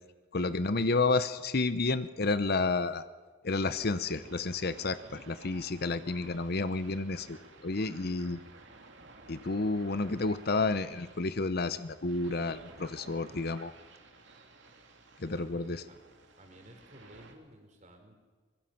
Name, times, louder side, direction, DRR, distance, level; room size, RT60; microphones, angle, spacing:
voice 1, 0.3-3.0 3.4-8.4 9.3-13.7 15.2-15.8, left 3 dB, 50° left, 13 dB, 0.8 m, -30 dB
sound 1, 3.6-17.3, right 3 dB, 60° right, 2.7 m, -54 dB
voice 2, 15.2-16.0 16.4-18.2, right 1 dB, 35° right, 4 dB, 3.8 m, -54 dB
24.0 x 22.0 x 5.8 m, 1.4 s
head